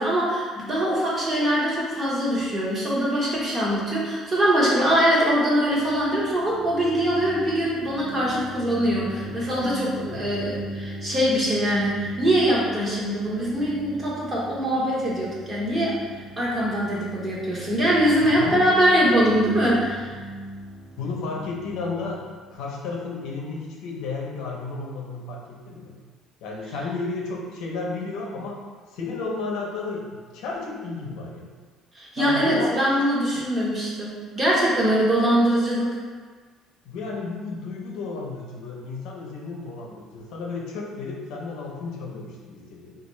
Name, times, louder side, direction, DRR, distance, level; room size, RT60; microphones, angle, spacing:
voice 1, 0.0-16.0 16.4-20.1 31.9-36.0, equal, 25° right, -6 dB, 0.9 m, -23 dB
sound 1, 5.7-23.3, right 1 dB, ahead, 0.4 m, -39 dB
voice 2, 9.2-10.3 18.2-18.7 21.0-26.0 26.4-28.6 28.9-31.5 32.2-33.4 35.0-35.1 36.8-43.0, left 3 dB, 75° left, -2 dB, 0.6 m, -33 dB
3.6 x 2.4 x 3.1 m, 1.5 s
cardioid pair, 140°, 0 cm